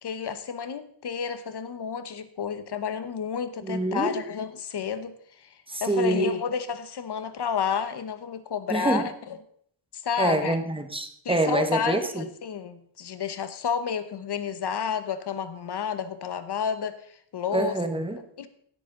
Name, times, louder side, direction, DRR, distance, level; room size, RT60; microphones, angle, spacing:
voice 1, 0.0-5.5 5.8-9.1 9.9-10.6 11.2-17.0 17.3-17.8 18.2-18.5, left 7 dB, 50° left, 11 dB, 1.1 m, -31 dB
voice 2, 3.6-4.2 5.7-6.3 8.7-9.1 10.2-12.2 17.5-18.2, right 2 dB, 10° right, 7 dB, 1.1 m, -26 dB
16.0 x 8.4 x 3.9 m, 0.63 s
wide cardioid pair, 150°, 50 cm